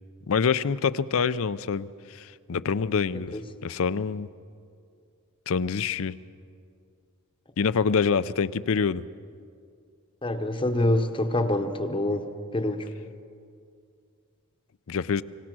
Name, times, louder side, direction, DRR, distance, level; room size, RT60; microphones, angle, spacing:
voice 1, 0.3-4.3 5.5-6.1 7.6-9.1 14.9-15.2, left 6 dB, 65° left, 16 dB, 0.5 m, -26 dB
voice 2, 10.2-12.9, left 1 dB, 25° left, 6 dB, 0.9 m, -26 dB
25.0 x 18.0 x 6.1 m, 2.3 s
head